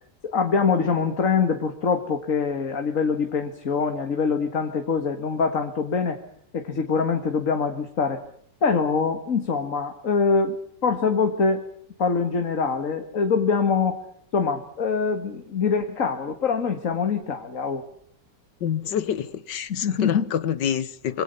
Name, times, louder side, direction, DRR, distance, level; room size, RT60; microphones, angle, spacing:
voice 1, 0.2-6.2 6.5-8.2 8.6-11.6 12.0-14.0 14.3-17.8 19.7-20.3, left 5 dB, 50° left, 2.1 m, -24 dB
voice 2, 18.6-21.2, left 9 dB, 90° left, 1.8 m, -27 dB
25.5 x 24.0 x 5.5 m
omnidirectional pair, 1.8 m